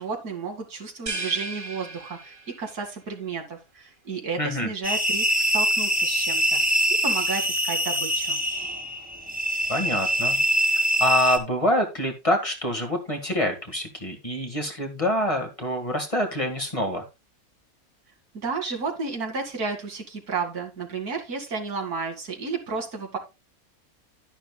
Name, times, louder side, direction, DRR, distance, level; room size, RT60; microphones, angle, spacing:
voice 1, 0.0-6.6 7.0-8.4 18.3-23.2, right 4 dB, 85° right, 1 dB, 2.7 m, -32 dB
sound 1, 1.1-2.8, right 2 dB, 35° right, 1.8 m, -35 dB
voice 2, 4.4-4.7 9.7-10.4 11.0-17.1, left 1 dB, 20° left, 3 dB, 1.7 m, -26 dB
sound 2, 4.8-11.4, equal, 5° right, 1.9 m, -24 dB
11.5 x 11.0 x 2.3 m, 0.26 s
omnidirectional pair, 1.6 m